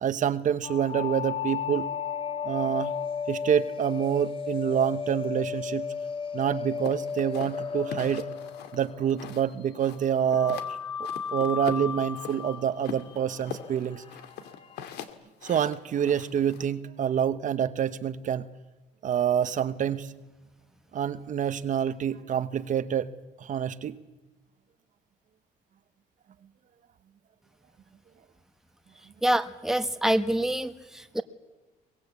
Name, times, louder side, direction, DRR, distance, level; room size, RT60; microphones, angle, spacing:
voice 1, 0.0-1.9 2.4-2.9 3.3-5.9 6.3-8.3 8.7-10.6 11.3-14.0 15.4-18.4 19.0-20.1 20.9-23.1 23.4-24.0, right 9 dB, 50° right, 12 dB, 1.1 m, -27 dB
sound 1, 0.6-9.4 10.3-15.1, left 6 dB, 30° left, 2.4 m, -34 dB
Footsteps in snow, 6.8-9.5 9.8-10.7 11.0-12.4 12.8-16.7, left 9 dB, 80° left, 2.3 m, -41 dB
voice 2, 29.2-31.2, right 1 dB, 5° right, 9 dB, 1.4 m, -26 dB
23.0 x 21.0 x 8.4 m, 1.2 s
cardioid pair, 110°, 17 cm